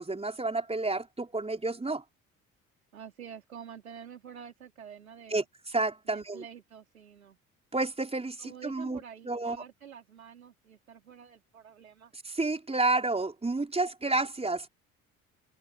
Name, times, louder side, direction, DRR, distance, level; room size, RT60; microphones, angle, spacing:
voice 1, 0.0-2.0 5.3-5.4 5.7-6.4 7.7-9.0 9.2-9.6 12.2-14.7, right 2 dB, 15° right, 4.7 m, -30 dB
voice 2, 2.9-5.4 6.1-7.4 8.4-12.1, right 8 dB, 80° right, 4.4 m, -48 dB
figure-of-eight pair, 50°, 41 cm